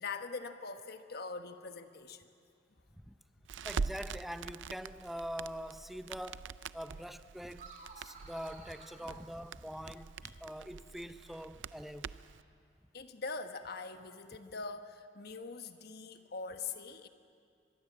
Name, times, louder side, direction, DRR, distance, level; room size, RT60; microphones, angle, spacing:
voice 1, 0.0-2.3 3.6-3.7 9.0-9.2 10.2-10.4 12.9-17.1, left 4 dB, 60° left, 1.2 m, -43 dB
Crackle, 3.5-12.4, right 5 dB, 85° right, 0.5 m, -44 dB
voice 2, 3.6-12.2, equal, ahead, 0.7 m, -44 dB
sound 1, 7.5-10.0, right 3 dB, 45° right, 3.5 m, -54 dB
24.0 x 21.0 x 7.7 m
head